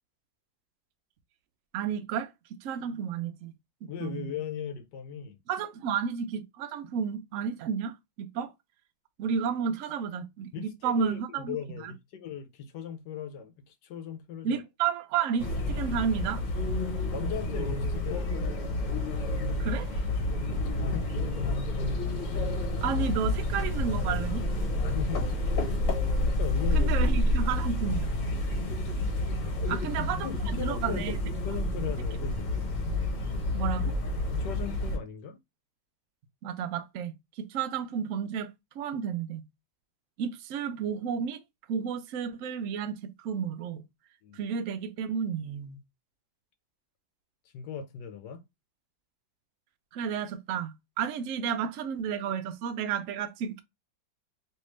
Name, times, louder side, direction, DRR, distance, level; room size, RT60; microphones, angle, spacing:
voice 1, 1.7-2.3 2.6-3.5 4.0-4.3 5.5-8.5 9.2-11.6 11.8-11.9 14.4-16.4 19.6-19.9 22.8-24.4 26.7-28.1 29.7-30.3 30.6-31.2 33.5-34.0 36.4-38.5 38.8-39.4 40.2-41.4 41.7-43.8 44.3-45.8 49.9-53.6, right 7 dB, 80° right, 0.7 m, -32 dB
voice 2, 3.9-5.4 10.5-14.6 17.1-18.6 20.6-21.2 24.8-25.3 26.2-27.2 29.6-29.9 30.2-32.5 34.3-35.4 44.2-44.4 47.5-48.4, left 7 dB, 75° left, 1.2 m, -38 dB
sound 1, 15.4-35.0, left 1 dB, 50° left, 1.1 m, -29 dB
3.3 x 2.7 x 3.1 m
omnidirectional pair, 2.0 m